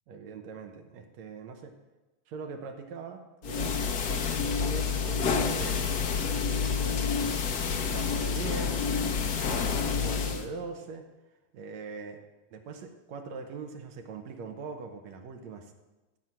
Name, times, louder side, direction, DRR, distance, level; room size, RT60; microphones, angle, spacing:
voice 1, 0.1-1.8 2.3-11.1 11.5-12.2 12.5-15.7, right 5 dB, 75° right, 5 dB, 2.2 m, -42 dB
sound 1, 3.4-10.5, left 5 dB, 70° left, 0.9 m, -28 dB
15.5 x 5.6 x 7.7 m, 1.1 s
omnidirectional pair, 3.3 m